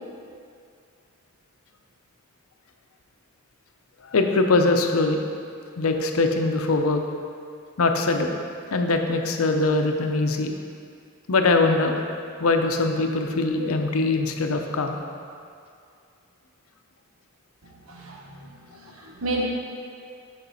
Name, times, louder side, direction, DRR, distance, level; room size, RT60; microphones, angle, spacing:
voice 1, 4.0-5.2 5.8-7.0 7.8-8.4 8.7-10.5 11.3-12.0 12.4-15.0, left 3 dB, 85° left, 4 dB, 0.7 m, -22 dB
voice 2, 17.6-19.4, right 2 dB, 80° right, -2 dB, 1.2 m, -33 dB
8.9 x 5.2 x 4.1 m, 2.4 s
head